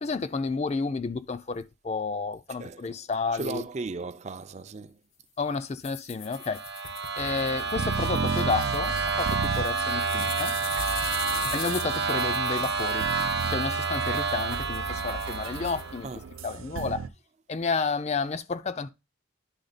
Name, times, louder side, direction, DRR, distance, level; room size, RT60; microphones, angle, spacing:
voice 1, 0.0-3.6 5.4-6.6 7.2-10.6 11.5-13.1 13.5-16.1 16.4-17.1 17.5-18.9, left 4 dB, 35° left, 0.4 m, -31 dB
voice 2, 2.6-3.0 3.3-5.0 16.0-16.4, right 3 dB, 35° right, 0.4 m, -36 dB
sound 1, 5.8-16.4, left 9 dB, 85° left, 0.8 m, -41 dB
sound 2, 6.3-16.0, right 5 dB, 55° right, 1.0 m, -29 dB
sound 3, 7.2-17.1, right 4 dB, 85° right, 0.5 m, -35 dB
10.0 x 3.6 x 4.0 m
head